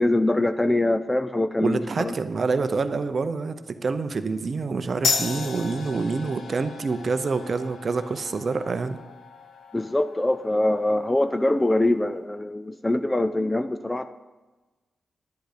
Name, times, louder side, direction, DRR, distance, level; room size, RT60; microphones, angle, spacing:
voice 1, 0.0-2.2 9.7-14.1, left 1 dB, 10° left, 11 dB, 0.3 m, -23 dB
voice 2, 1.6-3.6 3.8-9.0, right 4 dB, 35° right, 10 dB, 0.7 m, -27 dB
sound 1, 5.0-12.1, left 5 dB, 60° left, 0.9 m, -34 dB
10.5 x 10.5 x 5.0 m, 1.2 s
wide cardioid pair, 175°, 0 cm